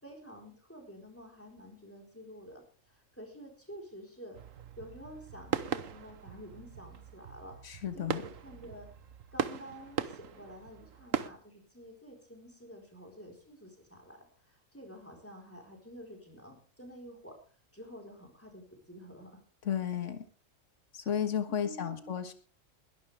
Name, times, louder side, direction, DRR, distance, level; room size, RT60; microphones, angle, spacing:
voice 1, 0.0-4.4 4.8-8.9 9.3-17.4 17.7-19.3 21.5-22.1, equal, 10° left, 2 dB, 4.3 m, -50 dB
sound 1, 4.3-11.3, right 8 dB, 80° right, 1.4 m, -39 dB
voice 2, 7.6-8.2 19.6-20.2 20.9-22.3, left 9 dB, 65° left, 9 dB, 1.8 m, -33 dB
21.5 x 11.5 x 3.5 m, 0.39 s
omnidirectional pair, 1.3 m